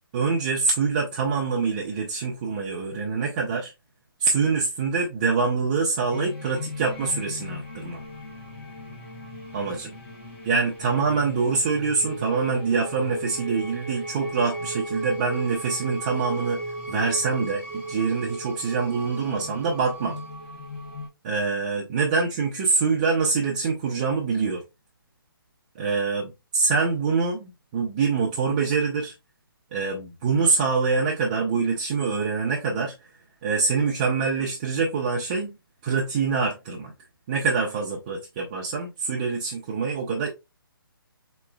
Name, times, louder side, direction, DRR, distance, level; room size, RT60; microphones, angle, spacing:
voice 1, 0.1-3.7 4.2-8.0 9.5-9.9 10.5-16.6 16.9-20.2 21.2-24.6 25.7-29.1 29.7-32.9 33.4-35.5 35.8-36.9 37.3-40.3, right 4 dB, 20° right, 0.6 m, -25 dB
sound 1, 6.1-21.1, right 1 dB, 35° left, 2.1 m, -36 dB
4.6 x 3.0 x 2.2 m
hypercardioid pair, 165°, 12 cm